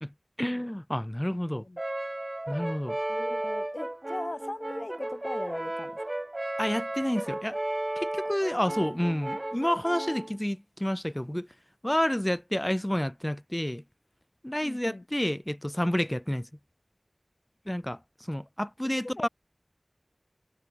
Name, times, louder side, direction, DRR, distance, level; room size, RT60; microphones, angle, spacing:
voice 1, 0.4-1.6 2.5-3.0 6.6-7.6 8.0-11.5 11.8-13.8 14.4-16.5 17.7-18.0 18.3-19.3, equal, 15° left, 0.6 m, -29 dB
Brass instrument, 1.8-10.3, right 1 dB, 45° right, 2.2 m, -34 dB
voice 2, 3.1-5.9 8.5-8.7 14.6-15.0 19.0-19.3, left 2 dB, 65° left, 1.1 m, -39 dB
wide cardioid pair, 40°, 0 cm